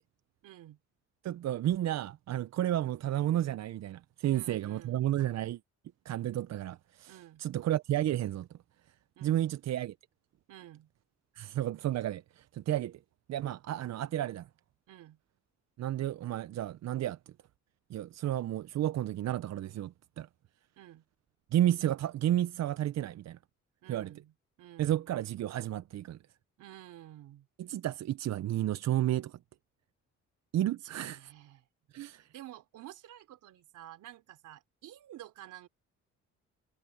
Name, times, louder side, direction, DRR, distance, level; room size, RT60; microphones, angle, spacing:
voice 1, 0.4-0.8 4.3-5.1 7.1-7.4 9.2-9.5 10.5-10.9 14.9-15.2 20.8-21.0 23.8-25.1 26.6-27.5 30.8-31.7 32.1-35.7, right 13 dB, 80° right, 3.7 m, -51 dB
voice 2, 1.2-5.6 6.0-8.5 9.2-9.9 11.3-13.0 13.3-14.5 15.8-17.2 17.9-20.3 21.5-23.4 23.9-24.1 24.8-26.2 27.6-29.4 30.5-31.3 31.9-32.3, right 12 dB, 60° right, 0.6 m, -32 dB
cardioid pair, 90°, 30 cm